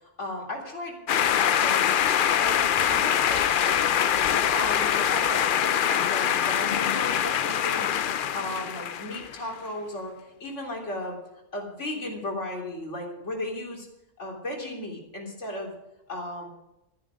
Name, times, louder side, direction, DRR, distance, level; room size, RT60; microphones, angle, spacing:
voice 1, 0.0-1.9 2.4-2.6 2.9-3.9 4.3-8.0 8.3-11.2 11.5-13.9 14.2-15.8 16.1-16.5, left 1 dB, 80° left, -1 dB, 3.7 m, -35 dB
sound 1, 1.1-9.4, left 9 dB, 55° left, 0.6 m, -24 dB
14.0 x 10.0 x 6.3 m, 0.88 s
omnidirectional pair, 1.2 m